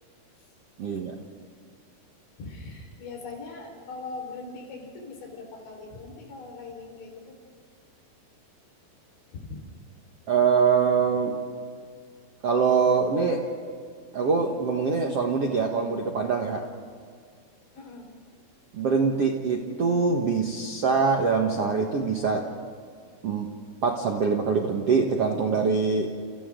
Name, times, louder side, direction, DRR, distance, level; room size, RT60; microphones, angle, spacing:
voice 1, 0.8-1.2 10.3-11.3 12.4-13.4 14.1-16.6 18.7-22.4 23.2-23.5 23.8-26.1, right 5 dB, 60° right, 1 dB, 1.6 m, -24 dB
voice 2, 2.4-7.4 9.3-9.6 17.7-18.1, left 3 dB, 80° left, 1 dB, 7.1 m, -40 dB
30.0 x 30.0 x 3.9 m, 2.1 s
omnidirectional pair, 5.2 m